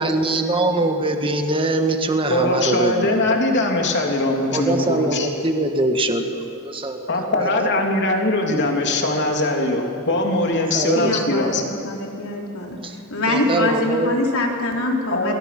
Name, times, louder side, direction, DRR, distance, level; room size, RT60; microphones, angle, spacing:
voice 1, 0.0-3.2 4.5-7.8 10.4-11.1 12.8-13.0 13.3-14.2, right 2 dB, 25° right, 5 dB, 1.6 m, -23 dB
voice 2, 2.3-5.3 7.1-11.6 15.1-15.3, left 2 dB, 55° left, 1 dB, 3.3 m, -21 dB
voice 3, 11.0-15.3, left 1 dB, 70° left, 0 dB, 4.1 m, -24 dB
27.5 x 21.5 x 6.1 m, 3.0 s
head